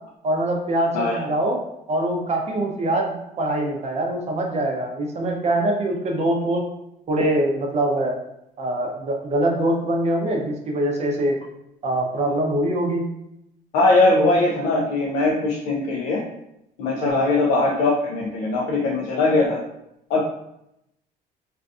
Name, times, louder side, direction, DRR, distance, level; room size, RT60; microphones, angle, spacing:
voice 1, 0.2-1.6 1.9-6.6 7.1-8.2 8.6-11.4 11.8-13.0 17.0-17.3, right 1 dB, 40° right, 1 dB, 0.6 m, -23 dB
voice 2, 0.9-1.3 12.2-12.3 13.7-16.3 16.8-19.6 20.1-20.2, left 2 dB, 80° left, -3 dB, 0.4 m, -20 dB
2.5 x 2.3 x 2.4 m, 0.83 s
cardioid pair, 110°, 17 cm